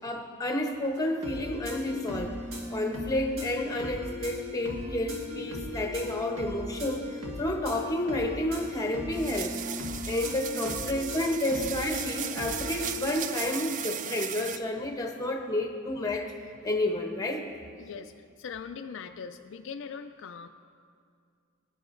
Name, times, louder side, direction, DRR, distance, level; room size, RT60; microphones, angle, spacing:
voice 1, 0.0-2.4 2.7-9.6 10.0-16.3 16.6-17.4, left 1 dB, 15° left, 3 dB, 0.8 m, -30 dB
sound 1, 0.9-13.1, left 2 dB, 75° right, 1.7 m, -38 dB
sound 2, 9.1-14.6, right 9 dB, 40° right, 0.3 m, -36 dB
voice 2, 17.8-20.5, left 6 dB, 60° left, 7 dB, 0.4 m, -41 dB
22.0 x 9.8 x 2.6 m, 2.2 s
head